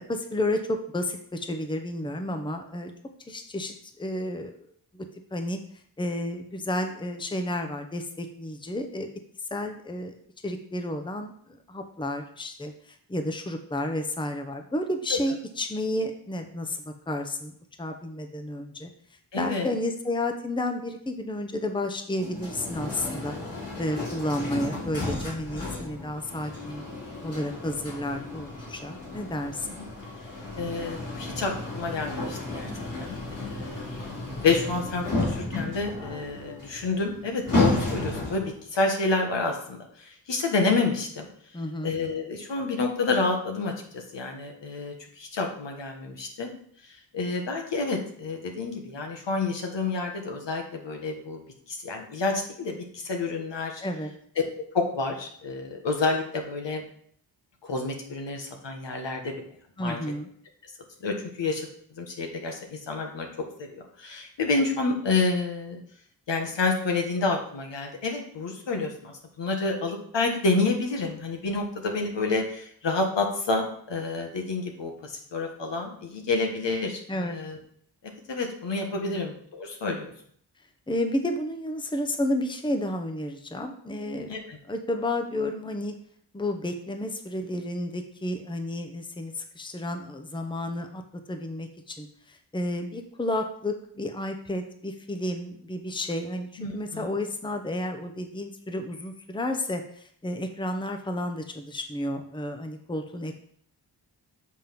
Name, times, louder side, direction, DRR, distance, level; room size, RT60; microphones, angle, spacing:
voice 1, 0.0-2.9 3.3-4.6 4.9-5.1 5.3-5.6 6.0-9.1 9.5-10.1 10.4-18.9 19.4-23.3 23.8-26.9 27.2-29.8 41.5-42.0 53.8-54.1 59.8-60.3 77.1-77.4 78.9-79.2 80.9-84.3 84.6-85.9 86.3-91.0 91.3-103.4, left 1 dB, 10° left, 5 dB, 0.8 m, -31 dB
voice 2, 19.3-19.7 29.6-29.7 30.6-32.7 33.0-41.3 41.8-46.5 46.9-51.4 51.7-53.8 54.7-56.8 57.6-59.3 59.8-60.0 61.0-61.7 61.9-63.3 63.6-65.8 66.3-77.6 78.0-80.1 84.3-84.6 96.6-97.1, left 3 dB, 75° left, 2 dB, 1.5 m, -29 dB
sound 1, 22.2-38.6, left 2 dB, 50° left, 3.2 m, -33 dB
7.4 x 3.7 x 5.9 m, 0.63 s
wide cardioid pair, 80°, 43 cm